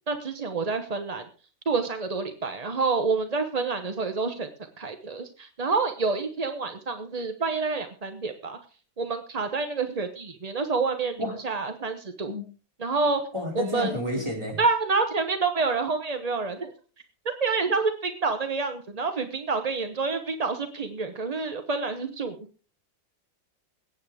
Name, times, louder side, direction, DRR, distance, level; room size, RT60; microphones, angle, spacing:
voice 1, 0.1-1.2 1.7-4.5 4.8-8.6 9.0-12.3 12.8-13.2 13.5-13.9 14.6-16.7 17.2-22.4, right 4 dB, 35° right, 7 dB, 0.6 m, -28 dB
voice 2, 13.3-14.6, left 1 dB, 15° right, -1 dB, 4.7 m, -30 dB
22.0 x 9.2 x 3.5 m, 0.37 s
omnidirectional pair, 2.1 m